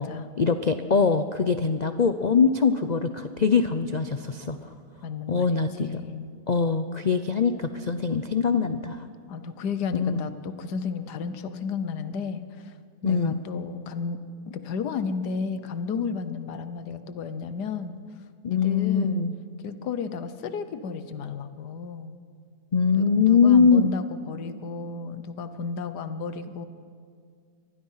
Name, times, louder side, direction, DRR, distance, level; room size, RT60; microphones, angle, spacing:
voice 1, 0.4-4.7 5.3-6.0 6.5-9.0 9.9-10.2 13.0-13.4 18.4-19.3 22.7-23.9, left 5 dB, 55° left, 9 dB, 0.4 m, -22 dB
voice 2, 5.0-6.3 9.3-12.7 13.0-14.2 14.5-17.9 18.5-19.2 19.6-22.1 23.0-26.7, left 5 dB, 80° left, 11 dB, 1.6 m, -33 dB
25.0 x 20.0 x 5.7 m, 2.2 s
omnidirectional pair, 1.7 m